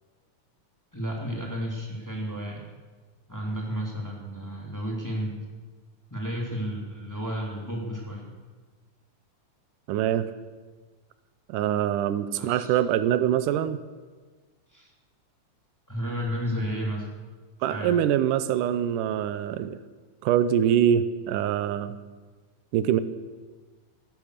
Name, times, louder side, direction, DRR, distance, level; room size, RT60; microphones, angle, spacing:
voice 1, 0.9-2.7 3.3-5.3 6.1-8.3 12.3-12.8 14.7-14.9 15.9-17.1 17.7-17.9, equal, 5° left, -2 dB, 2.7 m, -32 dB
voice 2, 9.9-10.3 11.5-13.8 17.6-19.8 20.2-22.0 22.7-23.0, right 10 dB, 90° right, 13 dB, 2.3 m, -24 dB
17.0 x 12.0 x 6.6 m, 1.4 s
omnidirectional pair, 3.7 m